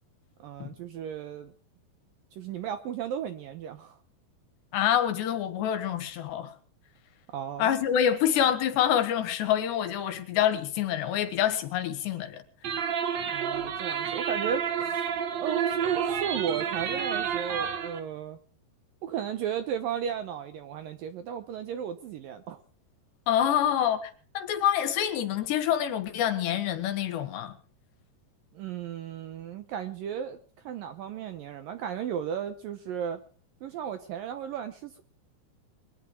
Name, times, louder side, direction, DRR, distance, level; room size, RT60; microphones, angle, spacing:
voice 1, 0.4-1.5 2.3-4.0 7.3-7.7 13.3-14.7 15.4-18.4 19.0-22.6 28.5-30.4 30.6-33.2 33.6-35.0, right 8 dB, 70° right, 2.2 m, -34 dB
voice 2, 4.7-6.5 7.6-12.4 23.3-27.6, left 10 dB, 75° left, 3.8 m, -26 dB
sound 1, 12.6-18.0, right 7 dB, 55° right, 2.1 m, -30 dB
22.5 x 11.0 x 4.7 m
omnidirectional pair, 5.1 m